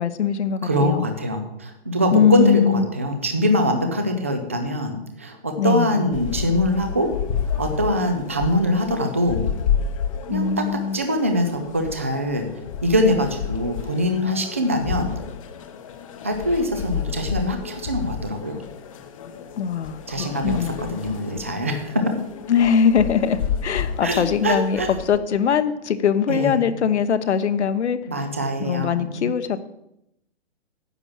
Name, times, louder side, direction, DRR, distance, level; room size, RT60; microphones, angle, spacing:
voice 1, 0.0-1.1 2.1-2.9 5.6-6.1 10.3-11.0 19.6-20.9 22.5-28.0 28.6-29.6, left 7 dB, 75° left, 10 dB, 1.1 m, -21 dB
voice 2, 0.6-7.1 7.6-9.4 10.3-12.5 12.8-15.1 16.2-18.6 20.1-22.2 24.0-24.9 26.3-26.7 28.1-29.3, equal, 15° right, 6 dB, 0.3 m, -23 dB
sound 1, 6.1-25.2, left 7 dB, 30° left, 0.8 m, -31 dB
9.8 x 6.1 x 8.6 m, 0.81 s
hypercardioid pair, 160°, 34 cm